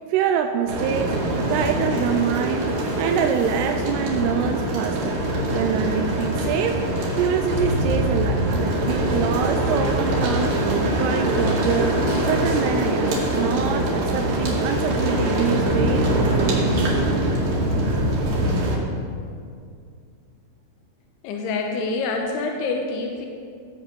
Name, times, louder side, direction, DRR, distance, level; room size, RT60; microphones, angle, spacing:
voice 1, 0.1-1.1 1.5-2.7 3.0-5.2 5.5-6.8 7.2-11.9 12.3-16.6, right 8 dB, 85° right, 5 dB, 2.6 m, -25 dB
sound 1, 0.7-18.8, right 1 dB, 65° right, 3.7 m, -23 dB
voice 2, 21.2-23.3, left 3 dB, 80° left, 1 dB, 3.0 m, -26 dB
16.5 x 8.0 x 5.3 m, 2.3 s
omnidirectional pair, 4.7 m